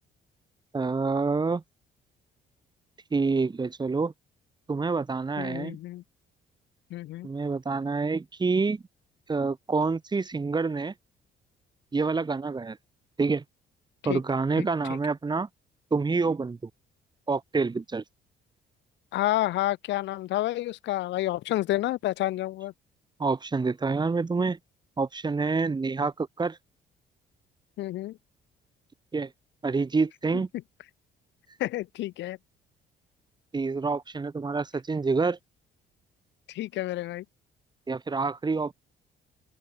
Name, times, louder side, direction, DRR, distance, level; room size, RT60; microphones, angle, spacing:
voice 1, 0.7-1.6 3.1-4.1 4.7-5.8 7.2-8.8 9.3-10.9 11.9-12.8 13.2-13.4 14.0-15.5 15.9-16.7 17.3-18.0 23.2-24.6 25.0-26.6 29.1-29.3 29.6-30.5 33.5-35.4 37.9-38.7, right 4 dB, 25° right, 2.5 m, -27 dB
voice 2, 5.4-6.0 6.9-7.3 14.0-14.2 14.6-15.0 19.1-22.7 27.8-28.2 31.6-32.4 36.5-37.2, left 15 dB, 80° left, 2.2 m, -29 dB
open air
cardioid pair, 105°, 18 cm